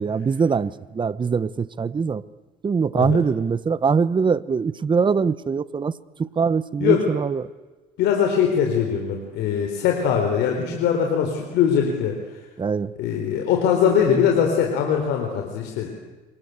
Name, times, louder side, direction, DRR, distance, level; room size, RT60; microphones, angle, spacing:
voice 1, 0.0-2.2 2.6-5.9 6.2-7.4 12.6-12.9, right 5 dB, 30° right, 17 dB, 1.0 m, -22 dB
voice 2, 8.0-12.1 13.0-15.9, left 8 dB, 85° left, 3 dB, 4.3 m, -21 dB
27.5 x 26.0 x 8.2 m, 1.2 s
cardioid pair, 110°, 17 cm